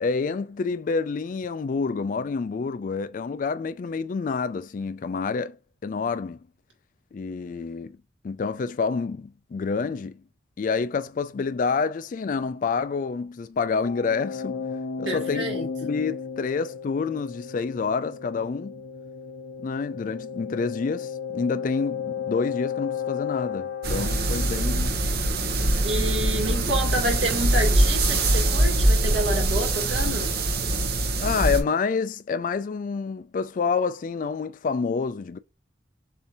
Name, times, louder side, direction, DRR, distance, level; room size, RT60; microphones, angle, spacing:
voice 1, 0.0-5.6 5.8-6.4 7.1-8.0 8.2-10.2 10.6-14.7 15.0-18.7 19.6-25.0 31.2-35.4, left 5 dB, 45° left, 0.3 m, -28 dB
sound 1, 13.8-25.5, left 7 dB, 85° left, 0.6 m, -34 dB
voice 2, 15.1-15.7 25.8-30.3, right 1 dB, 75° right, 1.9 m, -28 dB
sound 2, 23.8-31.6, right 1 dB, 55° right, 0.8 m, -23 dB
6.7 x 2.7 x 2.9 m
head